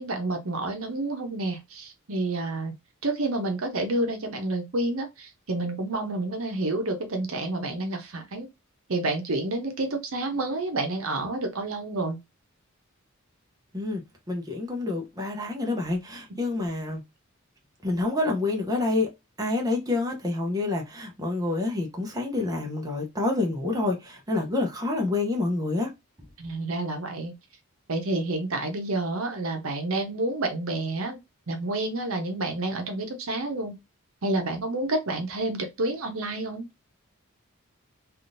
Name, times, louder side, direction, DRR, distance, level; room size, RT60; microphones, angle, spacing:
voice 1, 0.0-2.8 3.0-8.5 8.9-12.2 26.4-27.3 27.9-31.2 31.5-33.7 34.2-36.6, right 2 dB, 70° right, 0.8 m, -29 dB
voice 2, 14.3-17.0 17.8-19.1 19.4-25.9, left 2 dB, 15° right, 0.7 m, -27 dB
3.5 x 2.5 x 2.5 m
head